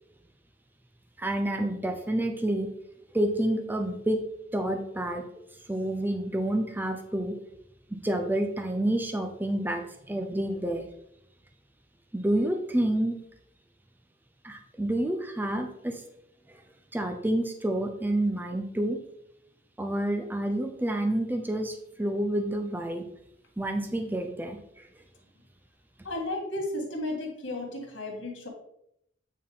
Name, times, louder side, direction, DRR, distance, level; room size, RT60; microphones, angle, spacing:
voice 1, 1.2-2.7 3.1-4.2 4.5-5.2 5.7-7.4 7.9-10.9 12.1-13.1 14.4-16.0 16.5-16.6 16.9-19.0 19.8-23.1 23.6-24.9, right 1 dB, 10° right, 5 dB, 0.6 m, -29 dB
voice 2, 26.0-28.5, left 1 dB, 75° left, 0 dB, 2.1 m, -33 dB
8.7 x 4.1 x 3.7 m, 0.75 s
head